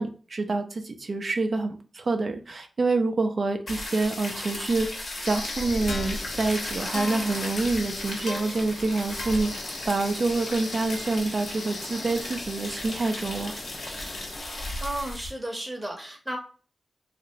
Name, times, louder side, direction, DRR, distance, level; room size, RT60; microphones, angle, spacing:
voice 1, 0.0-13.5, right 3 dB, 50° right, 6 dB, 0.4 m, -27 dB
sound 1, 3.7-15.3, left 1 dB, 65° left, 1.0 m, -36 dB
sound 2, 5.3-14.3, left 3 dB, 80° left, 0.6 m, -40 dB
sound 3, 5.6-14.4, left 1 dB, 25° left, 0.4 m, -46 dB
voice 2, 14.5-16.4, right 1 dB, 5° right, 1 dB, 0.8 m, -34 dB
2.9 x 2.5 x 2.7 m, 0.39 s
wide cardioid pair, 95°, 0 cm